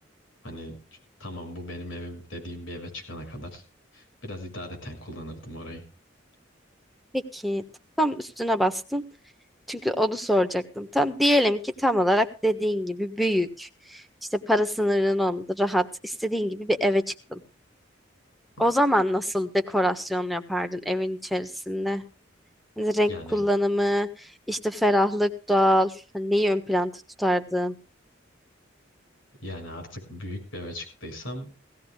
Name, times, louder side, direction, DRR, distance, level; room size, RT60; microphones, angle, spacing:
voice 1, 0.4-3.6 3.9-5.8 18.6-18.7 23.1-23.4 29.4-31.5, left 1 dB, 80° left, 5 dB, 6.3 m, -38 dB
voice 2, 7.1-7.6 8.0-9.0 9.7-14.0 14.3-17.4 18.6-22.0 22.8-24.1 24.5-26.9 27.2-27.7, equal, ahead, 5 dB, 1.3 m, -24 dB
19.5 x 16.5 x 2.3 m, 0.33 s
head